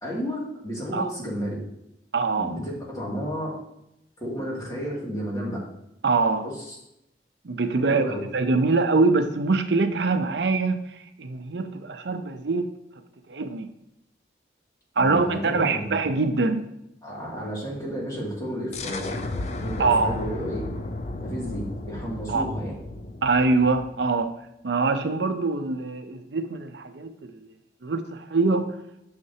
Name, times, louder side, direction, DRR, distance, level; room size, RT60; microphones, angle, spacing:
voice 1, 0.0-1.6 2.4-3.5 4.2-5.6 6.4-6.8 7.8-8.2 15.0-15.9 17.0-20.6 21.2-21.6 21.9-22.7, equal, 20° left, -5 dB, 2.3 m, -32 dB
voice 2, 2.1-2.6 6.0-6.5 7.4-8.0 8.3-10.8 11.2-12.7 13.3-13.7 15.0-16.7 19.8-20.2 22.3-22.5 23.2-24.3 24.6-27.4 27.8-28.7, right 3 dB, 75° right, 8 dB, 0.6 m, -23 dB
sound 1, 18.7-24.2, left 2 dB, 40° left, 0.5 m, -34 dB
9.8 x 6.5 x 2.8 m, 0.83 s
head